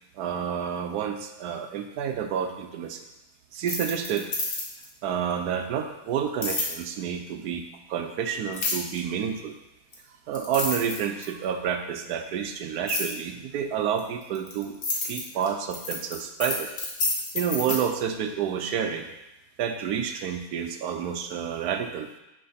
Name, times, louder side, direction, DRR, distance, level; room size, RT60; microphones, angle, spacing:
voice 1, 0.2-3.0 3.5-4.3 5.0-9.6 10.3-14.8 15.0-16.7 17.3-19.1 19.6-22.1, right 8 dB, 80° right, 6 dB, 1.1 m, -29 dB
sound 1, 3.6-4.9 6.4-6.7 8.5-9.0 9.9-10.0 10.3-11.4 12.9-13.1 14.0-17.8, left 3 dB, 75° left, 1.8 m, -29 dB
6.7 x 3.4 x 5.5 m, 0.93 s
omnidirectional pair, 1.7 m